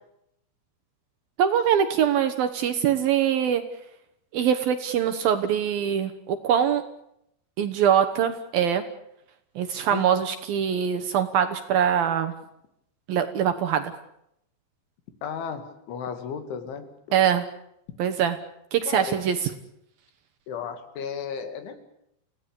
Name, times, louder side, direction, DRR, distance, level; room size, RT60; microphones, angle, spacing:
voice 1, 1.4-3.6 4.3-6.8 7.6-8.8 9.6-12.3 13.1-13.9 17.1-17.4 18.0-18.4 18.7-19.4, right 8 dB, 65° right, 7 dB, 2.5 m, -23 dB
voice 2, 15.2-16.9 18.9-19.2 20.5-21.8, left 7 dB, 75° left, 8 dB, 4.7 m, -34 dB
29.5 x 17.0 x 8.6 m, 0.78 s
omnidirectional pair, 5.5 m